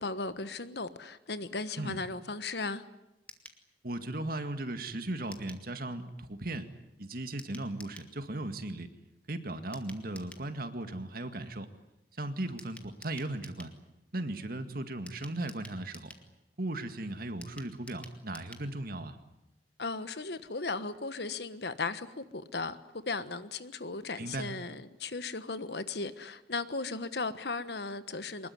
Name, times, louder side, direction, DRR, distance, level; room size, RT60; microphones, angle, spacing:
voice 1, 0.0-2.8 19.8-22.8 23.1-28.5, left 3 dB, 65° left, 1.3 m, -36 dB
sound 1, 3.3-3.6 5.3-5.7 7.4-8.1 9.7-10.5 12.6-13.8 15.1-16.3 17.4-18.7 19.0-19.1 19.3-19.4, left 1 dB, 10° left, 2.1 m, -51 dB
voice 2, 3.8-6.7 7.0-8.9 9.3-11.7 12.2-13.7 14.1-16.1 16.6-19.2 24.2-24.5, right 2 dB, 55° right, 2.0 m, -37 dB
24.5 x 21.0 x 9.6 m
head